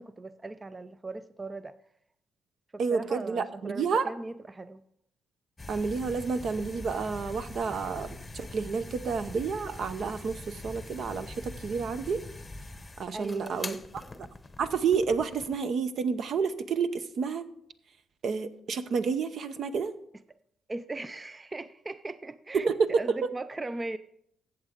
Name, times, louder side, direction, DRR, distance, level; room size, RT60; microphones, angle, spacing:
voice 1, 0.0-1.7 2.9-4.8 13.1-13.9 20.7-22.7 23.0-24.0, right 2 dB, 20° right, 13 dB, 0.4 m, -38 dB
voice 2, 2.8-4.1 5.7-12.2 13.0-13.8 14.6-17.4 18.2-19.9 22.5-22.9, right 5 dB, 60° right, 11 dB, 0.8 m, -30 dB
sound 1, 5.6-15.6, left 2 dB, 20° left, 0.8 m, -43 dB
14.5 x 8.0 x 3.7 m, 0.71 s
cardioid pair, 90°, 0 cm